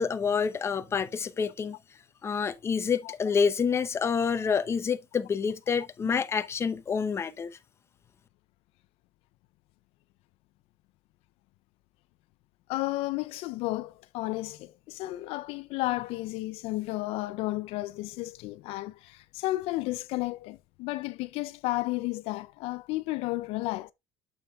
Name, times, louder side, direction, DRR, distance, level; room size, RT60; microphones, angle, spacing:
voice 1, 0.0-1.8 2.2-7.5, left 6 dB, 25° left, 0.8 m, -28 dB
voice 2, 12.7-23.9, left 19 dB, 75° left, 0.5 m, -32 dB
8.6 x 7.2 x 2.4 m
cardioid pair, 130°, 10 cm